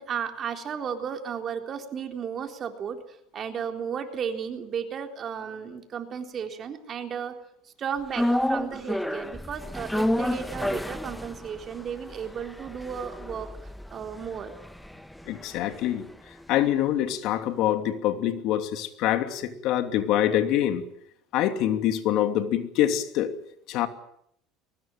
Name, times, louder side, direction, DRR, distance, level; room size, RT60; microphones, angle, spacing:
voice 1, 0.0-7.4 7.8-13.5 13.9-14.6, right 7 dB, 35° right, 5 dB, 3.7 m, -34 dB
sound 1, 8.1-16.4 16.7-16.8, left 1 dB, 5° left, 1.3 m, -31 dB
voice 2, 15.2-16.1 16.5-20.8 21.3-23.3 23.7-23.9, left 11 dB, 60° left, 8 dB, 2.8 m, -25 dB
23.0 x 20.0 x 9.1 m, 0.71 s
supercardioid pair, 115°, 0 cm